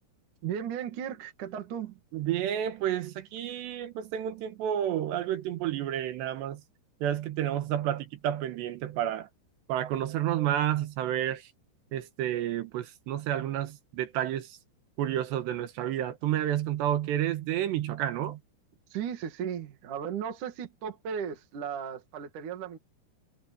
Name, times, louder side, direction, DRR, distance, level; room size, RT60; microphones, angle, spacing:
voice 1, 0.4-2.0 18.9-22.8, right 8 dB, 50° right, 3.2 m, -36 dB
voice 2, 2.1-6.6 7.0-9.3 9.7-11.5 11.9-14.6 15.0-18.4, right 11 dB, 70° right, 3.2 m, -30 dB
omnidirectional pair, 5.7 m